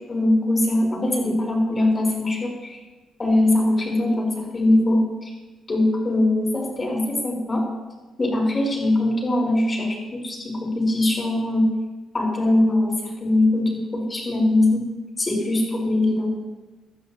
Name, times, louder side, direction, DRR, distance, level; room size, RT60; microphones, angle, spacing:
voice 1, 0.0-2.8 3.2-5.3 5.7-7.7 8.2-11.6 12.1-14.9 15.2-16.5, left 1 dB, 30° left, -1 dB, 4.2 m, -21 dB
17.0 x 12.0 x 2.9 m, 1.2 s
cardioid pair, 90°, 0 cm